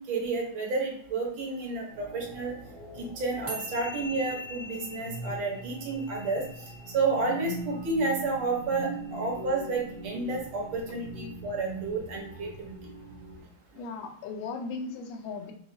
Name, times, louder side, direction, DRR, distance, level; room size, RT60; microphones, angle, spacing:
voice 1, 0.1-2.5 3.0-6.4 6.9-12.7, right 3 dB, 70° right, 0 dB, 1.8 m, -30 dB
sound 1, 1.9-13.4, right 1 dB, 90° right, 2.0 m, -42 dB
sound 2, 3.5-10.0, left 1 dB, 45° right, 0.9 m, -44 dB
voice 2, 13.8-15.5, left 4 dB, 75° left, 5 dB, 1.3 m, -37 dB
4.9 x 2.3 x 3.9 m, 0.68 s
omnidirectional pair, 2.3 m